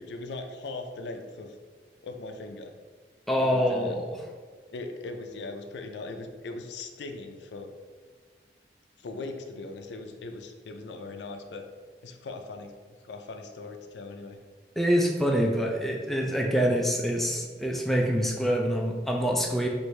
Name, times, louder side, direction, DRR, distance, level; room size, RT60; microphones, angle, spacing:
voice 1, 0.0-1.5 2.0-2.7 3.4-4.0 4.7-7.7 8.0-8.1 9.0-11.6 12.0-12.7 13.0-14.4, left 3 dB, 80° left, 5 dB, 0.4 m, -39 dB
voice 2, 3.3-3.9 14.8-19.7, equal, ahead, -1 dB, 0.3 m, -25 dB
4.6 x 2.6 x 3.2 m, 1.5 s
head